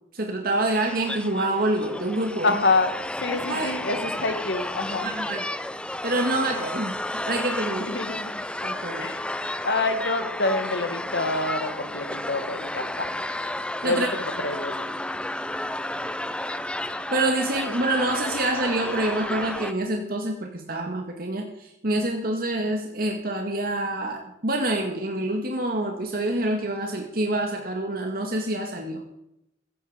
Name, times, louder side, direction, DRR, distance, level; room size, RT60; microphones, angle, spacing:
voice 1, 0.1-2.5 3.3-3.7 5.0-5.4 6.0-7.0 7.3-7.9 8.6-9.1 13.8-14.1 17.1-29.0, right 1 dB, 55° right, 3 dB, 2.0 m, -26 dB
sound 1, 0.7-19.7, left 1 dB, 5° left, 0.6 m, -32 dB
voice 2, 2.4-5.1 7.8-8.5 9.0-9.3 9.6-12.9 13.8-14.9, left 3 dB, 80° left, 8 dB, 1.9 m, -27 dB
15.5 x 15.0 x 5.1 m, 0.81 s
head